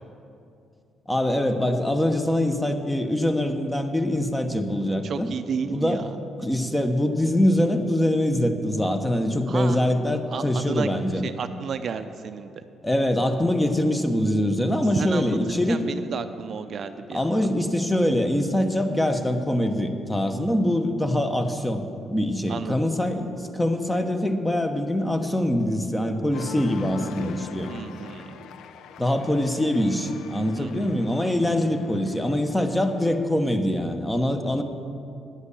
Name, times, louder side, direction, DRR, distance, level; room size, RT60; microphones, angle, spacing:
voice 1, 1.1-5.3 5.7-6.0 6.4-11.3 12.8-15.8 17.1-21.8 22.1-27.7 29.0-34.6, left 1 dB, 10° left, 6 dB, 1.0 m, -24 dB
voice 2, 5.0-6.2 9.5-9.8 10.3-10.9 11.2-12.6 15.0-17.3 22.5-22.8 27.7-28.4 30.6-30.9 31.2-31.3, right 6 dB, 55° right, 9 dB, 0.6 m, -32 dB
Cheering, 26.3-33.4, left 6 dB, 80° left, 0.5 m, -42 dB
9.9 x 8.0 x 8.3 m, 2.5 s
cardioid pair, 90°, 0 cm